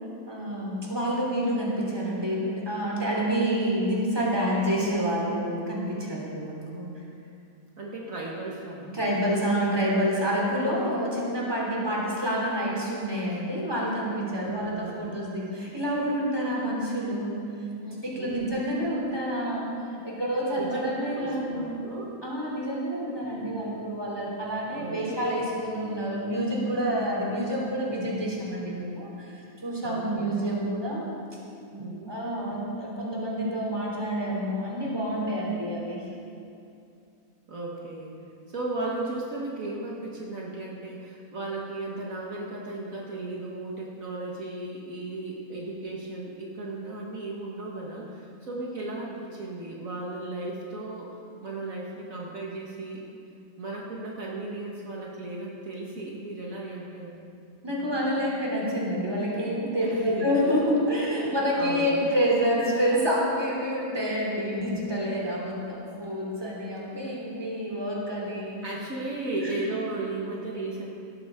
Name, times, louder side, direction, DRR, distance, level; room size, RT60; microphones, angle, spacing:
voice 1, 0.3-6.9 8.9-17.4 17.8-21.6 22.2-31.1 31.7-36.0 57.6-68.6 69.3-69.6, equal, 15° right, -4 dB, 3.1 m, -28 dB
voice 2, 7.8-9.1 14.5-15.1 18.1-18.6 20.6-20.8 21.1-22.1 24.8-25.2 29.8-30.4 31.8-32.1 37.5-38.1 38.5-53.0 53.6-57.2 59.8-60.3 61.6-62.1 68.6-70.9, right 2 dB, 65° right, -3 dB, 2.0 m, -35 dB
18.0 x 13.5 x 3.7 m, 2.5 s
omnidirectional pair, 1.5 m